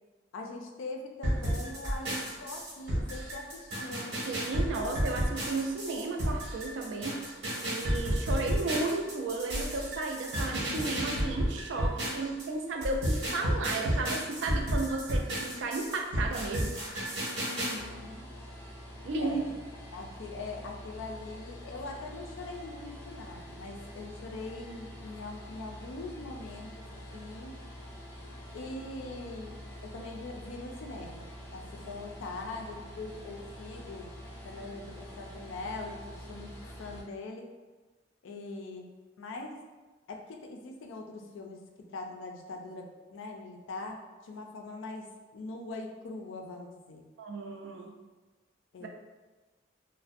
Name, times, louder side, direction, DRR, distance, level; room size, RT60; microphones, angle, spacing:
voice 1, 0.3-4.2 17.4-18.3 19.2-19.6 19.9-27.5 28.5-29.6 29.8-34.1 34.4-37.5 38.2-38.9 39.2-39.5 40.1-41.6 41.9-47.1 48.7-48.9, left 2 dB, 80° left, 2 dB, 0.4 m, -42 dB
sound 1, 1.2-12.4 12.8-17.7, equal, 85° right, 1.1 m, -32 dB
voice 2, 4.2-7.2 7.6-16.7 19.0-19.4 47.2-47.9 48.8-48.9, right 3 dB, 70° right, 2 dB, 0.3 m, -34 dB
sound 2, 17.7-37.0, equal, 15° left, 0.4 m, -46 dB
2.4 x 2.1 x 2.5 m, 1.3 s
head